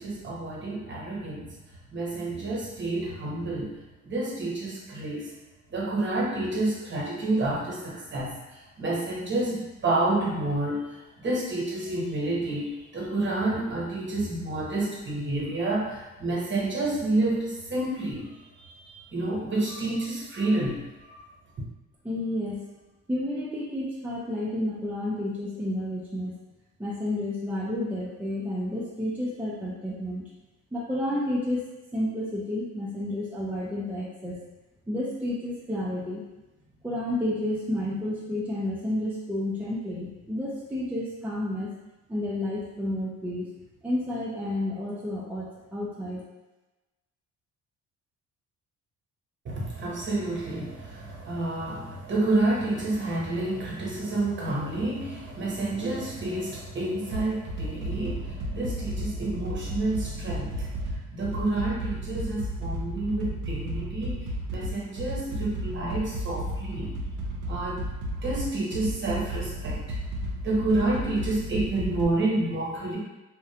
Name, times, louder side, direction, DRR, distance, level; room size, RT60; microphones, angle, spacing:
voice 1, 0.0-1.4 1.9-3.7 4.0-5.3 5.7-18.3 18.6-21.2 49.4-64.2 64.5-66.9 67.5-67.8 68.2-70.0 70.4-73.0, right 2 dB, 40° right, -4 dB, 0.9 m, -29 dB
voice 2, 22.0-22.6 23.1-26.4 26.8-30.2 30.7-31.6 31.9-34.4 34.9-36.2 36.8-41.7 42.1-43.5 43.8-46.2, left 1 dB, 5° right, -6 dB, 0.4 m, -30 dB
sound 1, 57.1-72.0, right 1 dB, 85° right, 0.5 m, -33 dB
2.4 x 2.0 x 2.7 m, 1.1 s
cardioid pair, 90°, 30 cm